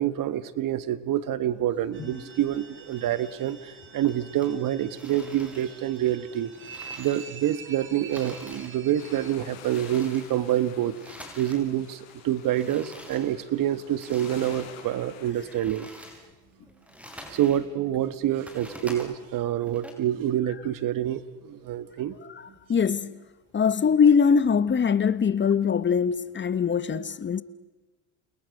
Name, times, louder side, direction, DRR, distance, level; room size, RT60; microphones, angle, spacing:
voice 1, 0.0-6.5 7.0-10.9 11.4-15.9 17.3-22.2, right 11 dB, 55° right, 1.7 m, -27 dB
sound 1, 1.4-2.6 2.9-3.7 4.0-7.6 7.9-11.7 12.0-14.7 15.1-17.7 18.0-19.9, equal, 5° right, 6.4 m, -47 dB
sound 2, 1.9-9.3, right 5 dB, 30° right, 4.1 m, -46 dB
sound 3, 9.0-15.3, left 8 dB, 85° left, 5.8 m, -48 dB
voice 2, 22.7-23.1 23.5-27.4, left 6 dB, 30° left, 1.2 m, -22 dB
29.5 x 29.5 x 6.7 m
supercardioid pair, 95°, 39 cm